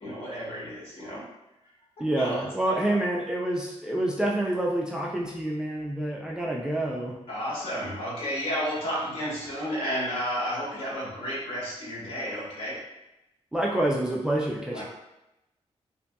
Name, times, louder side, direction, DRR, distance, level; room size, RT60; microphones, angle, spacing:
voice 1, 0.0-1.2 2.1-2.4 7.3-12.8 14.7-14.8, equal, 55° left, -7 dB, 1.3 m, -32 dB
voice 2, 2.0-7.2 13.5-14.8, right 1 dB, 5° right, -2 dB, 0.3 m, -27 dB
2.6 x 2.6 x 2.2 m, 0.91 s
cardioid pair, 110°, 11 cm